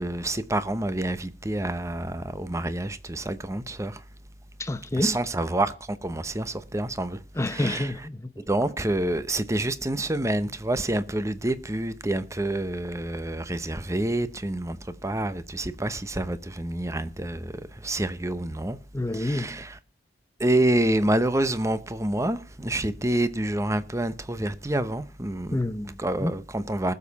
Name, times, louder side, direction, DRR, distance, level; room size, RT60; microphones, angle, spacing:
voice 1, 0.0-4.0 5.0-7.2 7.5-7.9 8.5-17.5 17.8-18.8 19.1-19.8 20.4-25.6 26.0-26.9, right 1 dB, 15° right, 0.9 m, -27 dB
voice 2, 4.6-5.2 7.4-8.4 18.9-19.6 25.5-26.3, left 1 dB, 15° left, 0.7 m, -28 dB
20.0 x 7.3 x 4.1 m
head